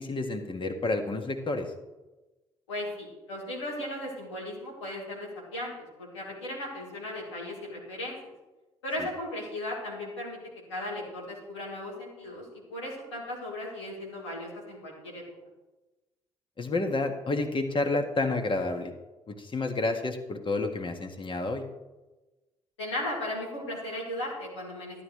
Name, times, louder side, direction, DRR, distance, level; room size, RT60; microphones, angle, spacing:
voice 1, 0.0-1.7 16.6-18.9 19.3-21.6, left 2 dB, 35° left, 5 dB, 1.6 m, -30 dB
voice 2, 2.7-8.2 8.8-10.4 10.7-15.2 22.8-25.0, left 1 dB, 90° left, -4 dB, 2.7 m, -36 dB
12.5 x 10.5 x 3.2 m, 1.1 s
hypercardioid pair, 45°, 14 cm